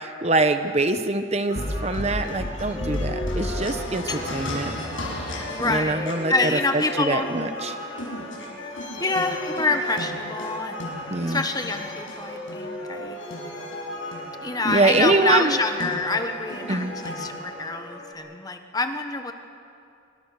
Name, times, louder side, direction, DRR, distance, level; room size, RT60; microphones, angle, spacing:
voice 1, 0.2-4.7 5.6-6.6 7.0-7.7 11.1-11.4 14.6-15.6 16.7-16.9, right 2 dB, 30° right, 9 dB, 0.9 m, -24 dB
sound 1, 1.5-18.1, left 1 dB, 70° left, 6.7 m, -33 dB
voice 2, 2.8-3.4 4.1-4.2 5.5-7.3 9.0-10.9 11.3-13.2 14.4-19.3, left 3 dB, 20° left, 7 dB, 1.3 m, -27 dB
26.5 x 24.5 x 6.7 m, 2.5 s
head